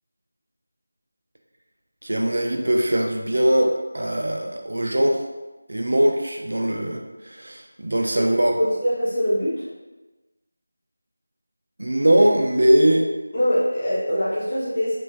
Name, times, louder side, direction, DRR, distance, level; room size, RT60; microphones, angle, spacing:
voice 1, 2.0-5.2 5.7-8.6 11.8-13.1, right 1 dB, 65° right, 2 dB, 0.4 m, -21 dB
voice 2, 8.5-9.7 13.3-15.0, equal, 20° left, -11 dB, 0.6 m, -23 dB
3.0 x 2.5 x 2.4 m, 1.2 s
figure-of-eight pair, 175°, 0 cm